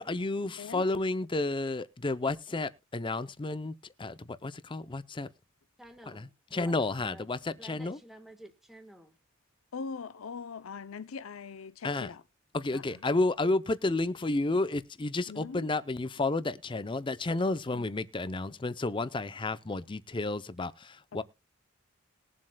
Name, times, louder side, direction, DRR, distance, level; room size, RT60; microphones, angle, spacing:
voice 1, 0.0-5.3 6.1-8.0 11.8-12.1 12.5-21.2, left 2 dB, 25° left, 0.6 m, -31 dB
voice 2, 5.8-6.7 7.0-9.2, right 1 dB, ahead, 1.4 m, -52 dB
voice 3, 9.7-12.2 12.7-13.0 15.3-15.7 17.7-17.9 21.1-21.2, left 5 dB, 80° left, 0.6 m, -41 dB
21.0 x 7.5 x 2.2 m
head